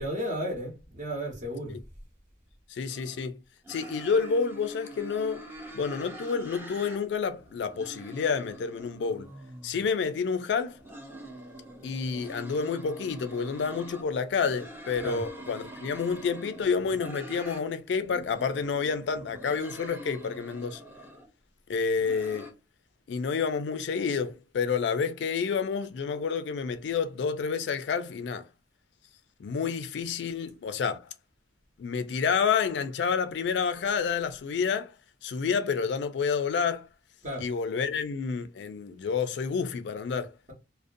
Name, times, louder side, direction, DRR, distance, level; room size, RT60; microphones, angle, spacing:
voice 1, 0.0-1.8 15.0-15.2 37.2-37.5, equal, 45° right, 1.0 m, -33 dB
voice 2, 2.7-3.4 3.7-5.5 5.7-9.3 9.6-10.8 11.8-20.8 21.7-22.5 23.1-28.5 29.4-31.0 31.8-34.9 35.2-36.9 37.4-40.3, left 5 dB, 75° left, 0.3 m, -29 dB
sound 1, 2.9-3.3 3.6-7.0 7.3-9.9 10.6-14.0 14.4-17.6 18.0-21.3 21.7-22.5, right 1 dB, 10° right, 0.6 m, -45 dB
2.5 x 2.1 x 2.5 m
head